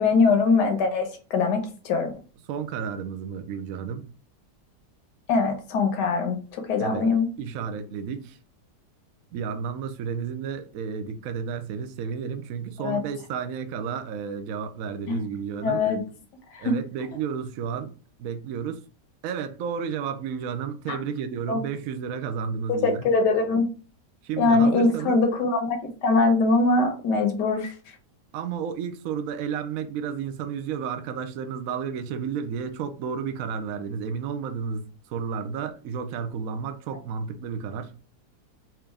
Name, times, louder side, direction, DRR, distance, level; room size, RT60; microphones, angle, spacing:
voice 1, 0.0-2.1 5.3-7.3 12.8-13.0 15.1-15.2 15.6-16.0 16.5-16.7 20.9-21.0 21.5-21.6 22.7-23.6 24.4-27.7, left 3 dB, 75° left, 1.4 m, -22 dB
voice 2, 2.5-4.1 6.8-7.1 7.4-8.4 9.3-15.8 16.6-17.9 18.2-18.8 19.2-23.1 24.2-25.2 28.3-37.9, right 6 dB, 70° right, 0.8 m, -32 dB
4.4 x 2.5 x 3.3 m
omnidirectional pair, 1.8 m